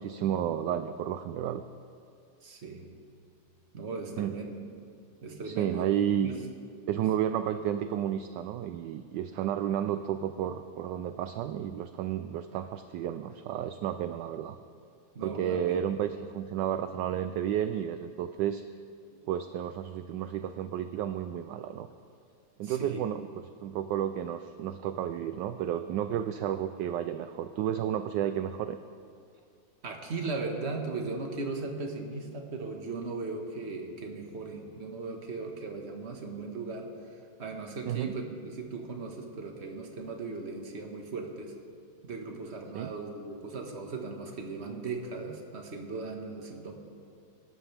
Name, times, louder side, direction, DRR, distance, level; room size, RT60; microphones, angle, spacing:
voice 1, 0.0-1.6 4.2-4.3 5.4-6.3 6.9-14.6 15.2-18.6 19.3-21.9 22.6-23.2 23.6-28.8 37.9-38.1 42.7-42.9, right 10 dB, 75° right, 10 dB, 1.1 m, -32 dB
voice 2, 2.4-2.9 3.7-4.6 5.2-5.9 6.2-6.5 6.9-7.0 15.1-15.8 19.1-19.2 22.6-23.0 29.8-36.9 37.4-41.5 42.0-46.7, right 3 dB, 35° right, 2 dB, 1.5 m, -38 dB
25.0 x 13.0 x 3.4 m, 2.3 s
omnidirectional pair, 2.2 m